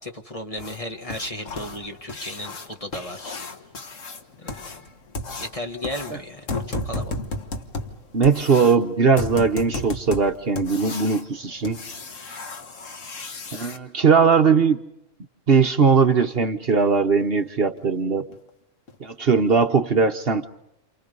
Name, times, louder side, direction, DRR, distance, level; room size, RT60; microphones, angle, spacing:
voice 1, 0.0-3.4 4.4-4.8 5.4-7.2, left 1 dB, 25° left, 4 dB, 1.7 m, -35 dB
sound 1, 0.6-13.8 16.1-16.2 16.6-16.7 17.2-17.3 17.8-17.9 18.3-18.5 18.9-19.0 19.4-19.5, left 3 dB, 70° left, 1.9 m, -34 dB
voice 2, 8.1-11.8 13.5-14.8 15.5-18.3 19.0-20.5, right 5 dB, 50° right, 7 dB, 1.3 m, -19 dB
29.0 x 28.5 x 5.4 m, 0.83 s
omnidirectional pair, 1.3 m